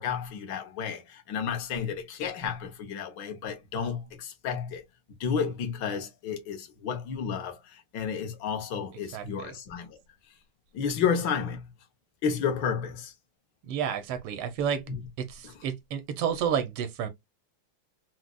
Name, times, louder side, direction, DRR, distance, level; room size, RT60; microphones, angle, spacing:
voice 1, 0.0-4.8 5.2-10.0 10.7-11.7 12.2-13.1 14.9-15.0 15.4-15.5, left 7 dB, 65° left, 1.3 m, -31 dB
voice 2, 9.1-9.5 13.7-14.8 15.2-17.1, right 8 dB, 90° right, 1.6 m, -30 dB
4.8 x 2.1 x 2.3 m
omnidirectional pair, 2.4 m